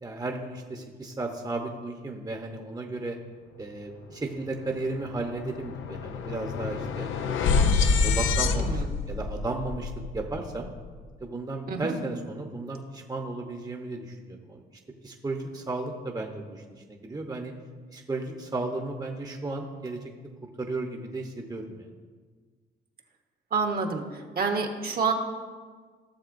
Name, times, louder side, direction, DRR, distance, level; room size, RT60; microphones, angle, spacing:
voice 1, 0.0-3.2 3.6-7.6 8.0-10.7 11.2-14.6 15.0-17.5 17.9-20.0 20.6-21.8, right 2 dB, 20° right, 2 dB, 0.9 m, -34 dB
sound 1, 4.3-4.4 4.7-11.0, left 4 dB, 80° left, 0.6 m, -27 dB
voice 2, 8.6-8.9 11.7-11.9 23.5-25.1, right 4 dB, 50° right, 3 dB, 1.2 m, -28 dB
15.5 x 6.8 x 2.6 m, 1.5 s
cardioid pair, 90°, 20 cm